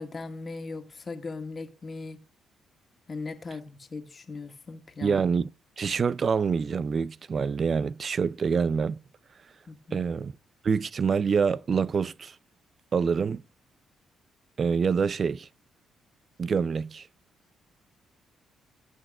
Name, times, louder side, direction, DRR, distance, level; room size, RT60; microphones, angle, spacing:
voice 1, 0.0-2.2 3.1-5.2 9.7-10.1, left 3 dB, 35° left, 1.7 m, -38 dB
voice 2, 5.0-5.5 5.8-9.0 9.9-10.3 10.6-12.4 12.9-13.4 14.6-15.5 16.4-17.1, right 6 dB, 45° right, 0.4 m, -26 dB
16.5 x 7.9 x 2.4 m
cardioid pair, 90°, 0 cm